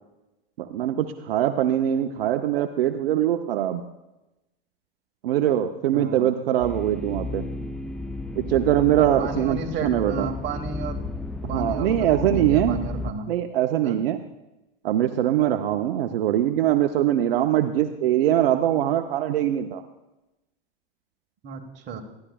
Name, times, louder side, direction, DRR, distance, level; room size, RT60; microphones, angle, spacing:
voice 1, 0.6-3.8 5.2-7.4 8.4-10.3 11.4-12.8 13.3-14.2 14.8-19.8, right 11 dB, 75° right, 8 dB, 0.6 m, -22 dB
voice 2, 5.9-6.3 9.2-11.0 11.5-13.3 13.8-14.0 21.4-22.0, right 5 dB, 35° right, 4 dB, 1.3 m, -32 dB
sound 1, 6.6-13.1, left 2 dB, ahead, 0.4 m, -33 dB
12.0 x 11.5 x 2.3 m, 0.98 s
hypercardioid pair, 100°, 29 cm